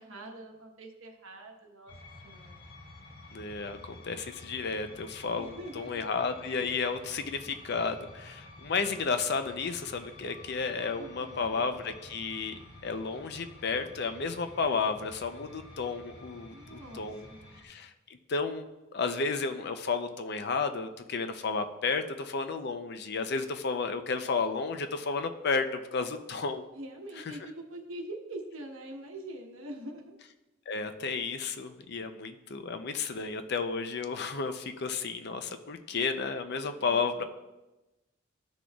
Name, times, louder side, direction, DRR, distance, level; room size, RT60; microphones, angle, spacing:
voice 1, 0.0-1.9 2.2-2.6 5.4-6.1 11.0-11.7 16.5-17.5 26.7-30.2 36.6-37.2, right 1 dB, 75° right, 2 dB, 1.2 m, -44 dB
sound 1, 1.9-17.6, left 2 dB, 85° left, 3.1 m, -50 dB
voice 2, 3.3-17.3 17.6-17.9 18.3-18.7 18.9-26.6 30.7-37.2, left 4 dB, 55° left, 8 dB, 0.6 m, -32 dB
13.5 x 6.2 x 2.3 m, 1.0 s
head